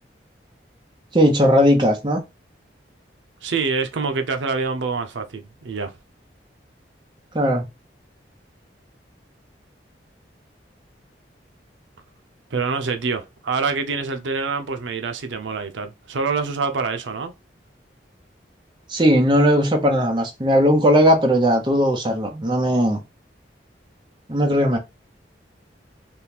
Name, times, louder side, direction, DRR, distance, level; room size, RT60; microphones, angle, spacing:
voice 1, 1.1-2.2 7.3-7.6 18.9-23.0 24.3-24.8, equal, 25° right, 0.8 m, -17 dB
voice 2, 3.4-5.9 12.5-17.3, right 4 dB, 90° right, 0.5 m, -26 dB
3.6 x 2.4 x 2.8 m
head